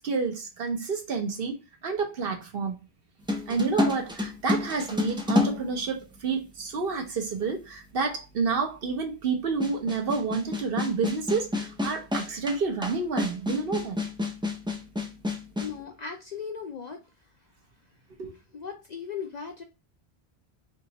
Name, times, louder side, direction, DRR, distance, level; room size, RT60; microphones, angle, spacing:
voice 1, 0.0-1.5 1.8-2.8 3.5-14.0 18.2-18.3, right 4 dB, 60° right, 0.9 m, -29 dB
sound 1, 3.3-6.5 7.3-7.4 9.6-15.7, left 2 dB, 10° right, 0.3 m, -29 dB
voice 2, 15.6-17.0 18.5-19.6, left 6 dB, 55° left, 0.5 m, -37 dB
3.6 x 2.9 x 2.8 m
omnidirectional pair, 1.1 m